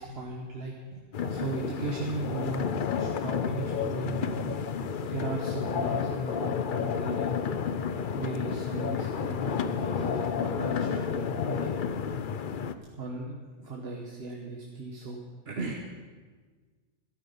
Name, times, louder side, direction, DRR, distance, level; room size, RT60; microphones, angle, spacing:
voice 1, 0.0-4.5 4.8-7.3 8.1-11.7 13.0-15.8, right 3 dB, 55° right, 0 dB, 1.4 m, -37 dB
sound 1, 1.1-12.7, left 6 dB, 50° left, 0.7 m, -31 dB
13.5 x 12.5 x 5.4 m, 1.5 s
omnidirectional pair, 1.3 m